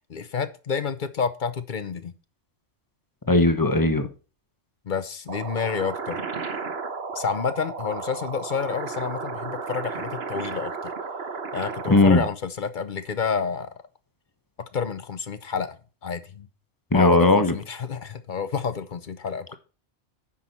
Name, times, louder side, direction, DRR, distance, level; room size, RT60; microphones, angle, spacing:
voice 1, 0.1-2.1 4.9-6.2 7.1-10.9 11.5-13.7 14.7-15.8 16.0-16.5 16.9-19.6, left 6 dB, 45° left, 0.8 m, -29 dB
voice 2, 3.3-4.1 11.9-12.2 16.9-17.5, left 2 dB, 20° left, 1.0 m, -18 dB
sound 1, 5.3-12.3, right 4 dB, 55° right, 1.3 m, -34 dB
9.8 x 6.2 x 4.2 m
omnidirectional pair, 1.3 m